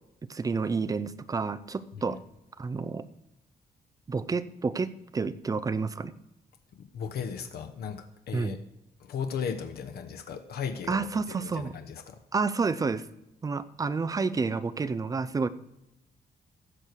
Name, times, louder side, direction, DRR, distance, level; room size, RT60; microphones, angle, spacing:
voice 1, 0.3-2.2 2.6-3.0 4.1-6.1 8.3-8.6 10.9-11.7 12.3-13.0 13.4-15.5, right 4 dB, 20° right, 13 dB, 0.5 m, -29 dB
voice 2, 6.8-8.6 9.0-12.1, left 7 dB, 90° left, 6 dB, 1.0 m, -36 dB
16.0 x 6.7 x 4.6 m, 0.87 s
wide cardioid pair, 160°, 16 cm